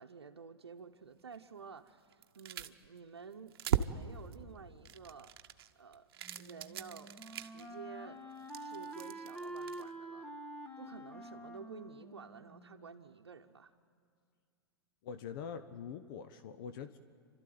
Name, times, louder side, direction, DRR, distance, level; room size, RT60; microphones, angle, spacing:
voice 1, 0.0-5.3 5.8-6.1 6.4-7.2 7.5-8.2 8.6-10.4 10.8-13.7, right 5 dB, 90° right, 3 dB, 0.8 m, -51 dB
sound 1, 1.3-1.4 2.1-3.0 3.3-4.4 4.8-7.7 8.3-9.9, right 9 dB, 65° right, 0.9 m, -38 dB
Wind instrument woodwind instrument, 6.2-13.1, right 1 dB, 10° left, 1.4 m, -47 dB
voice 2, 15.0-17.0, left 7 dB, 55° left, 11 dB, 1.0 m, -44 dB
29.5 x 13.0 x 9.4 m, 2.3 s
hypercardioid pair, 110°, 13 cm